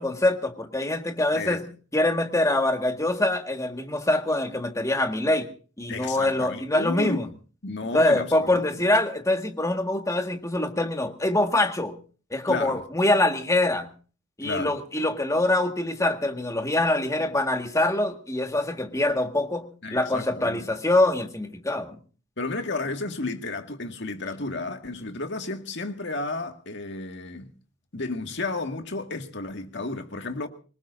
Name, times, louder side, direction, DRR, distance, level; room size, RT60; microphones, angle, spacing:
voice 1, 0.0-1.6 1.9-5.5 5.8-7.3 7.9-12.0 12.3-13.9 14.4-22.0, left 1 dB, 15° left, 1.7 m, -24 dB
voice 2, 5.9-7.2 7.6-8.8 12.5-12.8 14.4-14.8 19.8-20.7 22.4-27.5 27.9-30.5, left 3 dB, 65° left, 2.0 m, -32 dB
25.5 x 19.0 x 2.6 m
head